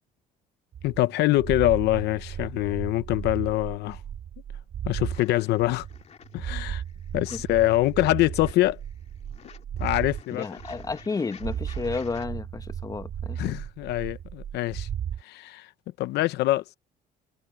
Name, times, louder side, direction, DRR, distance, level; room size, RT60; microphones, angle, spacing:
sound 1, 0.7-5.2 5.6-10.2 10.6-11.1 11.4-15.2, right 9 dB, 55° right, 1.8 m, -35 dB
voice 1, 0.8-4.0 4.8-5.9 6.3-6.8 7.1-8.8 9.8-10.6 13.4-14.9 15.2-15.7 16.0-16.8, left 16 dB, 80° left, 0.8 m, -24 dB
sound 2, 5.0-12.3, left 7 dB, 40° left, 2.3 m, -51 dB
voice 2, 10.3-13.4, left 4 dB, 20° left, 1.2 m, -32 dB
cardioid pair, 110°, 17 cm